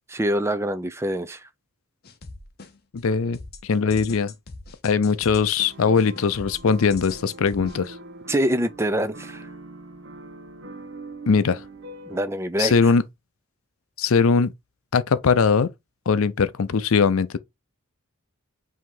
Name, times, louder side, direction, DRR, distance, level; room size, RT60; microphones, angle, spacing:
voice 1, 0.1-1.4 8.3-9.5 12.1-12.7, right 1 dB, 10° right, 0.4 m, -25 dB
sound 1, 2.0-3.0 3.3-7.9, left 3 dB, 45° left, 0.8 m, -41 dB
voice 2, 2.9-4.3 4.8-8.0 11.3-11.6 12.6-13.0 14.0-14.5 14.9-15.7 16.1-17.4, left 5 dB, 70° left, 0.5 m, -20 dB
sound 2, 5.6-12.2, right 2 dB, 55° right, 0.7 m, -42 dB
4.8 x 2.8 x 3.7 m
head